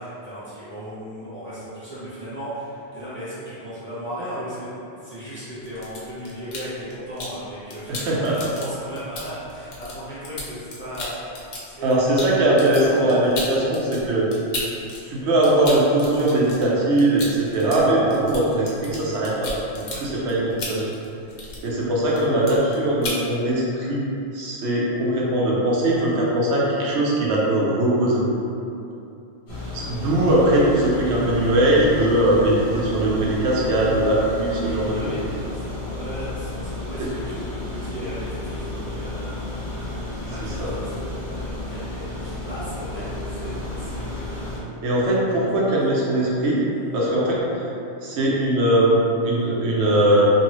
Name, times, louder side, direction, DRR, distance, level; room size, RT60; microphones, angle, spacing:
voice 1, 0.0-4.7 5.0-12.0 12.8-13.6 19.9-20.0 34.6-39.4 39.7-39.9 40.3-41.1 41.4-44.4 45.9-46.0 46.6-47.0, equal, 10° left, -13 dB, 0.8 m, -36 dB
sound 1, 5.6-7.4 7.7-15.0 15.3-21.8 22.1-22.8 23.0-23.2, left 2 dB, 85° left, 1.0 m, -34 dB
voice 2, 7.9-8.4 11.8-14.3 15.0-20.8 21.6-24.1 24.3-28.2 29.7-35.0 37.0-37.1 40.4-40.7 44.8-46.6 46.9-47.5 48.0-50.2, right 1 dB, 80° right, -5 dB, 0.9 m, -20 dB
sound 2, 29.5-44.6, left 2 dB, 50° left, 0.9 m, -32 dB
2.7 x 2.6 x 3.0 m, 2.7 s
omnidirectional pair, 1.1 m